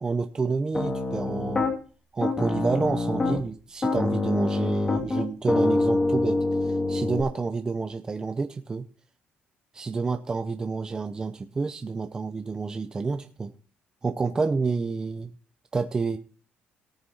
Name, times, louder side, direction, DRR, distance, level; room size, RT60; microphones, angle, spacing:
voice 1, 0.0-1.7 2.1-8.8 9.7-13.5 14.0-15.3 15.7-16.2, right 4 dB, 20° right, 7 dB, 0.7 m, -29 dB
Piano, 0.7-1.7 2.2-3.5 3.8-7.2, left 2 dB, 20° left, 2.2 m, -25 dB
18.5 x 6.7 x 4.1 m, 0.37 s
cardioid pair, 140°, 3 cm